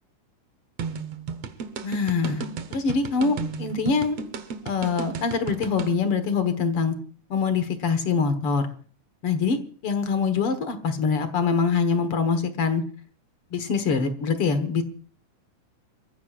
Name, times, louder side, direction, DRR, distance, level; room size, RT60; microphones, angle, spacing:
sound 1, 0.8-5.9, right 5 dB, 60° right, 2.0 m, -34 dB
voice 1, 1.8-2.5 2.7-4.2 4.7-7.0 7.3-8.7 9.2-9.6 9.8-12.8 13.5-14.8, left 5 dB, 55° left, 10 dB, 2.0 m, -24 dB
27.5 x 14.5 x 2.5 m, 0.43 s
omnidirectional pair, 3.7 m